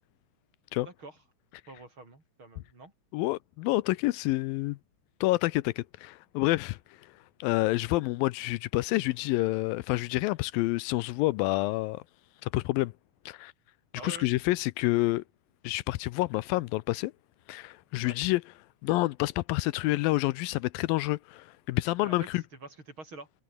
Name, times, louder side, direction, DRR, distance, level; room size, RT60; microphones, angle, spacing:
voice 1, 0.8-1.2 1.7-2.9 13.9-14.3 18.0-18.2 22.0-22.3 22.6-23.3, right 3 dB, 35° right, 6.3 m, -46 dB
voice 2, 3.1-4.8 5.2-6.8 7.4-12.0 12.4-12.9 13.3-13.5 14.0-15.2 15.6-17.1 17.5-18.4 18.8-22.4, left 19 dB, 85° left, 2.4 m, -28 dB
omnidirectional pair, 4.1 m